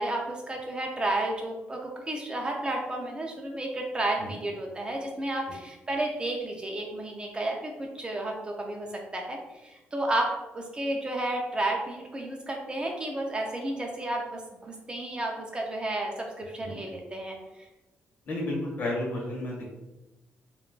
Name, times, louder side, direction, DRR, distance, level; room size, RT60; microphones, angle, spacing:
voice 1, 0.0-17.4, right 1 dB, 20° right, 0 dB, 0.4 m, -32 dB
voice 2, 18.2-19.7, left 1 dB, 45° left, -2 dB, 1.0 m, -32 dB
2.3 x 2.3 x 3.7 m, 1.0 s
cardioid pair, 120°, 4 cm